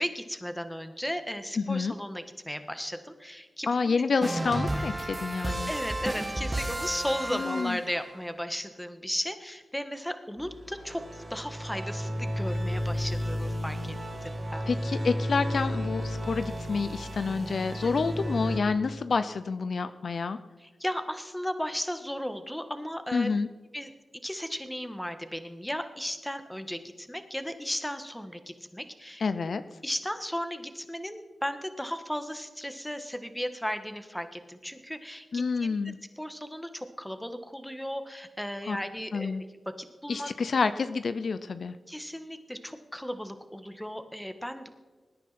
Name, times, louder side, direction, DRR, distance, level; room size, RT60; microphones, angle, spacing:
voice 1, 0.0-4.0 5.7-13.9 14.2-14.7 17.8-18.2 20.6-23.3 23.7-23.9 24.2-29.2 29.8-35.8 36.2-40.3 41.9-44.7, equal, 5° left, 8 dB, 1.6 m, -35 dB
voice 2, 1.6-1.9 3.7-5.7 7.3-7.8 14.7-20.4 23.1-23.5 29.2-29.6 35.3-36.0 38.7-38.8 39.1-39.4 40.1-41.8, left 4 dB, 70° left, 12 dB, 0.5 m, -28 dB
sound 1, 4.2-8.1, right 1 dB, 25° right, 1.8 m, -32 dB
sound 2, 10.4-18.6, equal, 45° right, 2.1 m, -33 dB
20.0 x 9.9 x 4.3 m, 1.3 s
cardioid pair, 45°, 0 cm